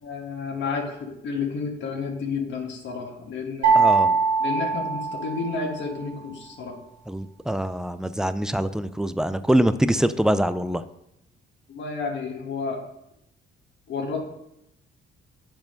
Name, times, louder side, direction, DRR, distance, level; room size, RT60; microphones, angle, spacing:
voice 1, 0.0-4.1 4.4-6.8 11.7-12.8 13.9-14.2, left 4 dB, 65° left, 2 dB, 1.6 m, -31 dB
sound 1, 3.6-5.8, right 5 dB, 85° right, 2.1 m, -22 dB
voice 2, 3.7-4.1 7.1-10.8, right 1 dB, 5° right, 13 dB, 0.4 m, -24 dB
8.1 x 4.7 x 5.2 m, 0.82 s
cardioid pair, 90°, 20 cm